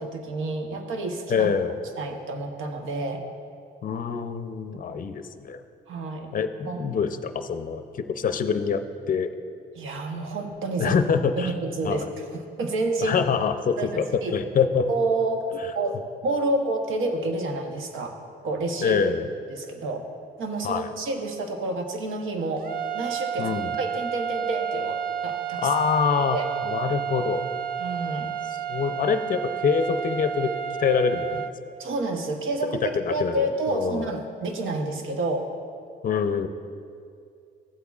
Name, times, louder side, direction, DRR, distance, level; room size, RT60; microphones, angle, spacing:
voice 1, 0.0-1.5 2.0-3.2 5.9-6.3 6.6-6.8 9.8-11.0 11.4-13.2 13.8-14.3 14.9-18.2 18.4-19.0 19.5-20.1 20.4-22.7 22.9-25.7 26.3-26.5 27.2-27.3 27.8-28.3 31.8-35.5, right 2 dB, 80° right, 4 dB, 1.0 m, -29 dB
voice 2, 1.3-1.8 3.8-5.6 6.3-9.3 10.8-11.5 11.8-12.1 13.0-14.9 18.8-19.3 20.6-20.9 23.4-23.7 25.6-26.4 26.6-27.4 28.7-30.5 30.8-31.5 32.8-34.1 36.0-36.5, left 6 dB, 45° left, 9 dB, 0.6 m, -25 dB
sound 1, 22.6-31.5, right 8 dB, 50° right, 0.5 m, -31 dB
14.5 x 8.1 x 2.4 m, 2.4 s
cardioid pair, 90°, 20 cm